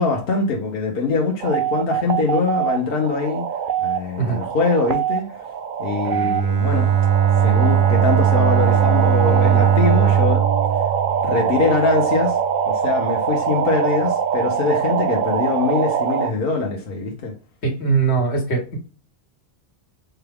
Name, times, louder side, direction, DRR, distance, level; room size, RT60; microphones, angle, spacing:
voice 1, 0.0-3.4 3.8-5.3 5.8-6.9 7.4-10.4 11.2-12.4 12.6-17.3, left 4 dB, 60° left, 1.1 m, -23 dB
sound 1, 1.4-16.3, right 7 dB, 60° right, 0.6 m, -23 dB
Bowed string instrument, 6.1-12.0, right 9 dB, 90° right, 1.0 m, -19 dB
voice 2, 17.6-18.8, right 5 dB, 85° left, 1.5 m, -21 dB
4.7 x 2.3 x 3.3 m
omnidirectional pair, 1.1 m